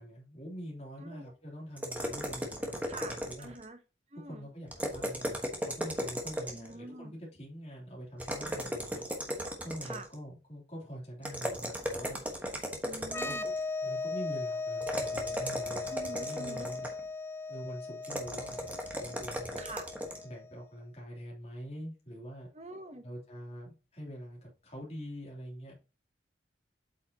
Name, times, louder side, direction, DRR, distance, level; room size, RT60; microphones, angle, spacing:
voice 1, 0.0-3.5 4.2-9.0 9.6-12.2 13.2-13.4 13.8-16.9 17.5-19.6 20.2-22.5 23.0-25.8, equal, 35° left, -3 dB, 3.0 m, -44 dB
voice 2, 1.0-1.3 2.9-3.8 4.1-4.5 6.5-7.1 9.8-10.1 12.8-13.5 15.9-16.7 19.6-19.9 22.5-23.0, right 2 dB, 35° right, 7 dB, 0.9 m, -45 dB
sound 1, 1.8-3.6 4.7-6.7 8.2-10.2 11.2-13.6 14.8-17.0 18.0-20.2, equal, 10° right, 1.3 m, -36 dB
sound 2, 13.1-20.6, left 3 dB, 10° left, 0.4 m, -38 dB
8.2 x 5.7 x 2.9 m, 0.32 s
head